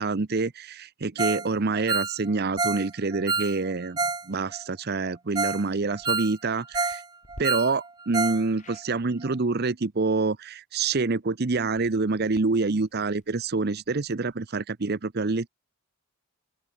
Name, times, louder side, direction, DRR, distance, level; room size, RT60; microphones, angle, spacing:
voice 1, 0.0-4.0 4.3-7.0 7.4-15.5, right 3 dB, 45° right, 0.7 m, -27 dB
Ringtone, 1.2-1.5 1.7-4.2 4.5-4.6 5.1-5.2 5.4-5.6 5.9-7.0 7.3-8.4 8.7-8.8 9.2-9.3, right 4 dB, 20° right, 1.6 m, -28 dB
sound 1, 5.9-6.2 7.2-7.4 8.6-8.9 11.6-14.4, left 1 dB, 35° left, 6.9 m, -51 dB
open air
head